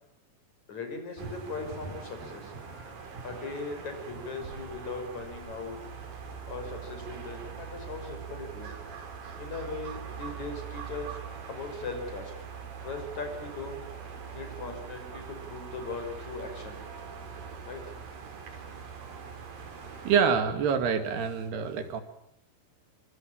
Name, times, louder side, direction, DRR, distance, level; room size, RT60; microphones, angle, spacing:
voice 1, 0.7-2.5 3.2-5.8 6.5-8.7 9.4-11.2 11.5-12.3 12.8-16.8 17.6-17.8, left 3 dB, 45° left, 6 dB, 6.8 m, -39 dB
sound 1, 1.2-20.2, right 6 dB, 60° right, 5.2 m, -42 dB
voice 2, 20.0-22.0, right 6 dB, 75° right, 9 dB, 4.4 m, -26 dB
26.5 x 25.0 x 8.8 m, 0.69 s
omnidirectional pair, 4.7 m